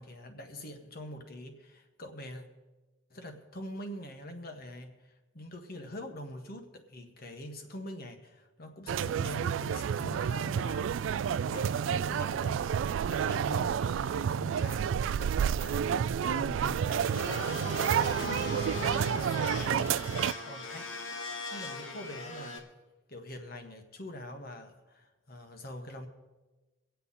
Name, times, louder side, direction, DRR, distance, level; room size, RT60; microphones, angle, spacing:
voice 1, 0.0-2.4 3.1-20.0 20.4-20.9 21.5-22.6 23.1-26.1, left 1 dB, 50° left, 6 dB, 1.6 m, -44 dB
sound 1, 8.9-20.3, right 8 dB, 75° right, 0.3 m, -30 dB
Domestic sounds home sounds, 17.0-22.6, left 1 dB, 85° left, 1.8 m, -39 dB
24.5 x 8.3 x 4.2 m, 1.2 s
head